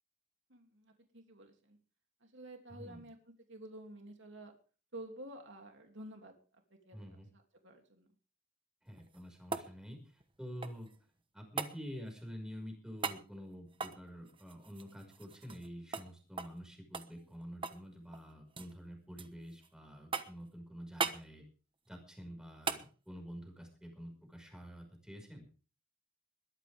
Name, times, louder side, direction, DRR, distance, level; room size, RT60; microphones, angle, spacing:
voice 1, 0.5-1.8 2.2-3.2 3.5-4.5 4.9-6.3 6.8-8.1, right 1 dB, 60° right, 4 dB, 2.9 m, -51 dB
voice 2, 2.7-3.0 6.9-7.3 8.8-10.9 11.3-21.4 21.9-25.5, equal, 5° right, 4 dB, 5.5 m, -48 dB
sound 1, 8.9-11.0 11.6-11.8 13.0-13.2 13.7-15.7 15.9-16.1 16.4-16.6 16.9-17.9 18.1-18.7 19.2-19.7 20.1-20.5 21.0-21.2 22.6-22.9 25.2-25.3, right 4 dB, 25° right, 1.2 m, -39 dB
21.5 x 14.0 x 3.6 m, 0.38 s
head